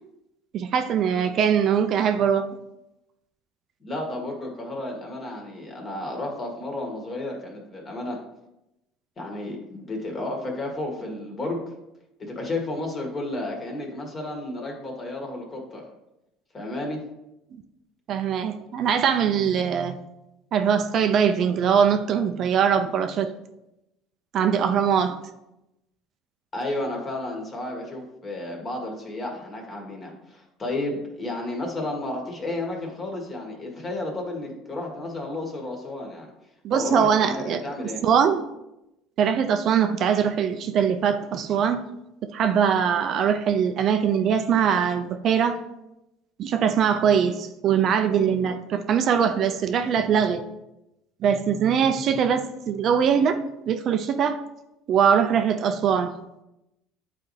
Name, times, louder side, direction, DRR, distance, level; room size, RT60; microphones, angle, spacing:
voice 1, 0.5-2.5 17.5-17.6 18.1-20.0 20.5-23.3 24.3-25.2 36.6-37.6 38.0-38.5 39.2-41.8 42.3-45.6 46.4-50.4 51.2-54.4 54.9-56.1, right 7 dB, 50° right, 0.5 m, -22 dB
voice 2, 3.8-8.2 9.2-11.6 12.2-15.8 16.5-17.0 26.5-36.3 36.7-38.0, left 2 dB, 30° left, 1.9 m, -32 dB
9.8 x 4.2 x 3.2 m
supercardioid pair, 110°, 0 cm